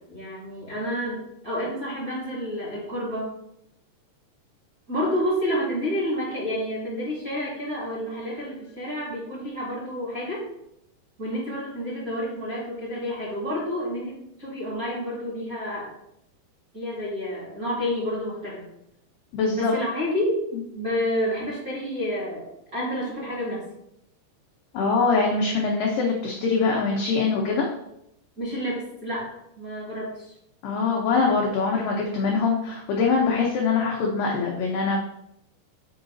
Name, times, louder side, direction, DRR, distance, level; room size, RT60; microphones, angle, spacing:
voice 1, 0.1-3.3 4.9-10.4 11.2-14.1 14.4-15.9 16.7-18.6 19.5-20.4 20.7-23.6 28.4-30.3, equal, 30° right, -7 dB, 1.9 m, -29 dB
voice 2, 19.3-19.7 20.5-20.6 24.7-27.7 30.6-35.0, left 4 dB, 80° left, -1 dB, 2.0 m, -23 dB
7.0 x 4.8 x 3.9 m, 0.80 s
omnidirectional pair, 5.0 m